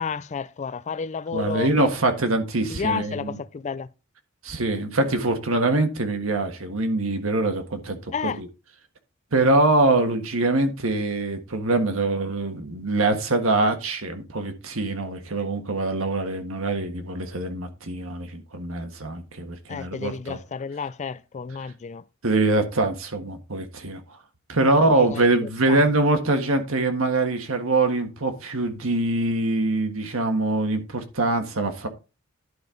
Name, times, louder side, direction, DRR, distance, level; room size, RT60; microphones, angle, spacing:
voice 1, 0.0-1.9 2.7-3.9 8.1-8.4 19.7-22.0 24.6-25.9, left 5 dB, 35° left, 0.4 m, -31 dB
voice 2, 1.3-3.4 4.4-8.5 9.3-20.4 22.2-24.0 24.5-31.9, right 2 dB, 70° right, 1.5 m, -24 dB
11.0 x 5.4 x 3.8 m
head